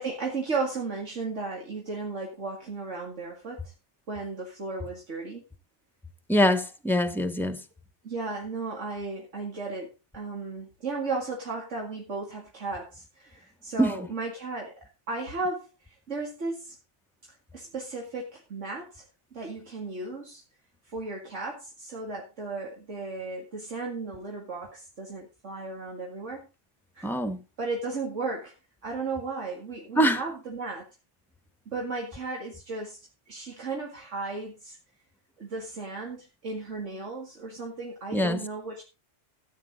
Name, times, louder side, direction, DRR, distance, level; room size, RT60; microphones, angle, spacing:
voice 1, 0.0-3.7 4.1-5.4 8.0-14.7 15.1-16.8 17.5-19.0 19.3-20.4 20.9-26.5 26.9-27.1 27.6-28.5 28.8-30.9 31.7-33.0 33.3-34.8 35.4-38.8, right 3 dB, 85° right, 2.5 m, -35 dB
voice 2, 6.3-7.6 13.8-13.9 27.0-27.4 30.0-30.2 38.1-38.4, equal, ahead, 0.8 m, -23 dB
14.0 x 8.6 x 4.0 m
omnidirectional pair, 1.2 m